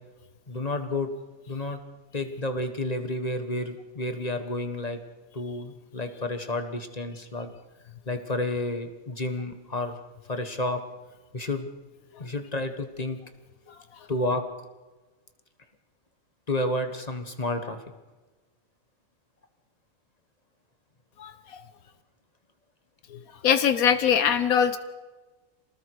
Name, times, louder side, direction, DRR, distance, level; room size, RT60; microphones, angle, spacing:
voice 1, 0.5-1.1 1.5-1.8 2.1-5.0 5.3-7.5 8.1-10.0 10.3-10.8 11.3-11.7 12.2-13.2 14.1-14.4 16.5-17.8, left 2 dB, 30° left, 7 dB, 1.6 m, -30 dB
voice 2, 21.2-21.7 23.1-24.8, left 8 dB, 90° left, 10 dB, 1.6 m, -23 dB
28.0 x 19.5 x 4.9 m, 1.2 s
omnidirectional pair, 1.4 m